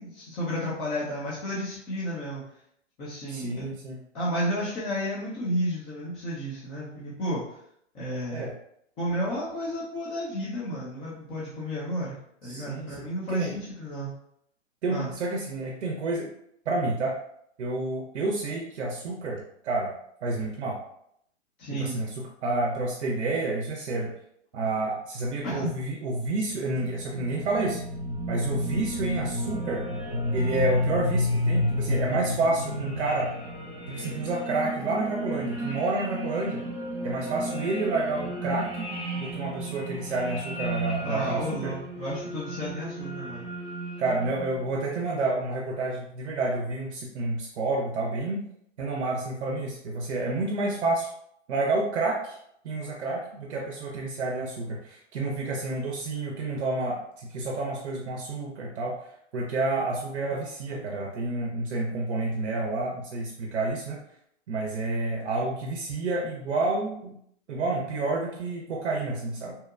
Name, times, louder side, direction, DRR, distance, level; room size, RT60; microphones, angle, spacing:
voice 1, 0.0-2.4 3.0-3.7 4.1-7.4 7.9-8.5 9.0-14.1 14.9-15.1 21.6-22.0 25.4-25.7 41.0-43.5, equal, 15° left, -8 dB, 0.4 m, -32 dB
voice 2, 3.3-4.0 8.3-8.5 12.4-13.0 13.3-13.6 14.8-16.3 16.7-17.2 17.6-19.9 20.2-20.8 21.7-22.1 22.4-24.1 24.5-27.8 28.3-29.9 30.3-33.3 33.9-36.6 37.0-38.9 39.2-41.7 44.0-48.4 48.8-51.1 51.5-52.4 52.6-59.0 59.3-64.0 64.5-67.1 67.5-69.6, right 2 dB, 65° right, -1 dB, 0.6 m, -29 dB
sound 1, 26.3-44.7, equal, 30° left, 0.9 m, -32 dB
2.8 x 2.1 x 2.3 m, 0.72 s
figure-of-eight pair, 115°, 37 cm